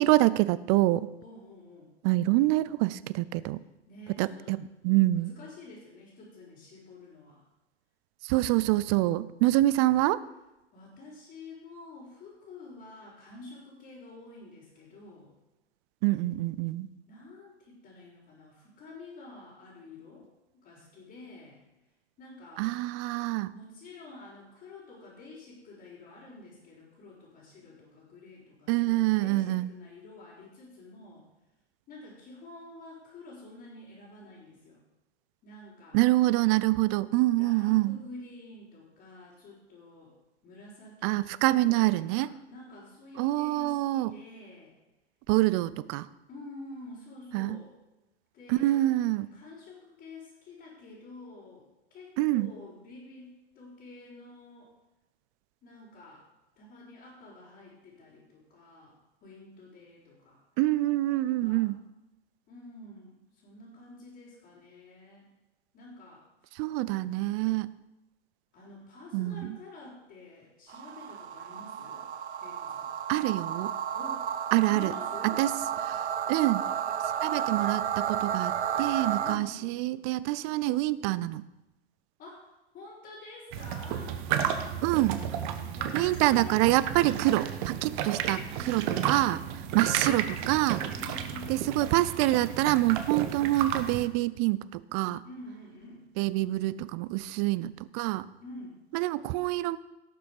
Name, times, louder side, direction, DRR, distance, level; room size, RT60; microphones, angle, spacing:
voice 1, 0.0-1.1 2.0-3.6 4.2-5.3 8.2-10.2 16.0-16.9 22.6-23.5 28.7-29.7 35.9-38.0 41.0-42.3 43.2-44.1 45.3-46.1 47.3-47.6 48.5-49.3 52.2-52.5 60.6-61.8 66.6-67.7 69.1-69.6 73.1-73.7 74.5-74.9 75.2-75.5 75.9-76.7 77.2-81.4 84.8-85.2 85.9-89.4 89.7-90.8 91.5-95.2 96.2-98.3 98.9-99.8, right 17 dB, 25° right, 18 dB, 0.4 m, -26 dB
voice 2, 1.2-1.9 3.9-4.6 5.1-7.4 10.7-15.3 17.1-20.3 20.5-21.6 22.2-22.7 23.5-31.2 31.9-34.8 35.4-36.1 37.3-40.1 40.4-41.2 41.5-44.7 46.3-47.7 48.3-48.9 49.3-54.7 55.6-56.2 56.6-58.9 59.2-60.4 61.2-61.7 62.5-65.3 65.7-66.6 68.5-72.1 72.4-72.9 73.9-74.3 74.6-75.4 79.2-79.8 82.2-84.2 85.7-86.7 88.5-89.7 91.0-92.0 95.2-96.1 98.4-98.8, left 2 dB, 30° left, -9 dB, 4.3 m, -48 dB
sound 1, 70.7-79.4, right 8 dB, 75° right, 0.8 m, -32 dB
sound 2, 83.5-94.1, right 9 dB, 45° right, 1.3 m, -33 dB
17.5 x 7.0 x 5.0 m, 1.0 s
hypercardioid pair, 105°, 34 cm